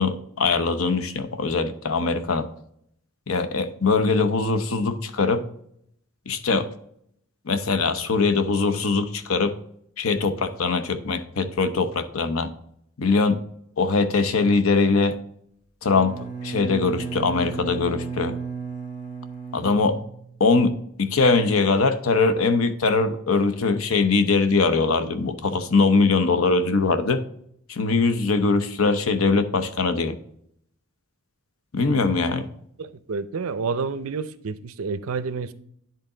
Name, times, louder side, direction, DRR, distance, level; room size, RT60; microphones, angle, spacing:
voice 1, 0.0-2.5 3.3-5.4 6.3-6.7 7.5-9.6 10.0-12.5 13.0-13.4 13.8-15.2 15.8-18.4 19.5-20.0 20.4-27.2 27.7-30.2 31.7-32.5, left 4 dB, 75° left, 10 dB, 0.8 m, -22 dB
Bowed string instrument, 15.8-20.6, right 6 dB, 35° left, 1.4 m, -34 dB
voice 2, 32.8-35.5, right 5 dB, 80° right, 14 dB, 0.5 m, -29 dB
10.5 x 3.9 x 3.8 m, 0.70 s
head